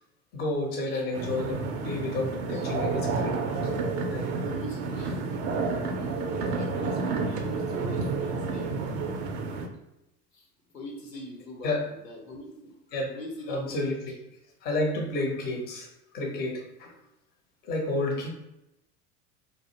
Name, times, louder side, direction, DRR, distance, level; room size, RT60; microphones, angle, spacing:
voice 1, 0.3-3.4 4.1-4.3 11.6-11.8 12.9-13.1 13.5-13.9 14.6-15.9 16.1-16.9 17.6-18.3, left 2 dB, 20° left, 0 dB, 0.5 m, -30 dB
sound 1, 1.1-9.7, right 4 dB, 45° right, 0.4 m, -30 dB
voice 2, 4.4-8.7 10.3-10.5 10.7-12.8 13.1-14.1, left 1 dB, 90° left, 0 dB, 0.7 m, -42 dB
2.4 x 2.0 x 2.6 m, 0.88 s
figure-of-eight pair, 80°, 46 cm